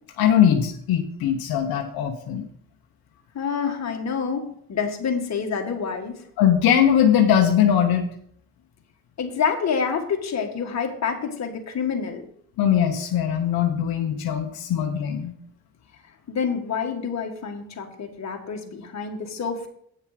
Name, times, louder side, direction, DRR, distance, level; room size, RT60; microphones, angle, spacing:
voice 1, 0.2-2.5 6.4-8.1 12.6-15.3, left 9 dB, 80° left, 4 dB, 0.9 m, -20 dB
voice 2, 3.3-6.2 9.2-12.3 16.3-19.7, left 6 dB, 50° left, 3 dB, 1.7 m, -27 dB
9.0 x 6.6 x 5.0 m, 0.68 s
cardioid pair, 95°, 36 cm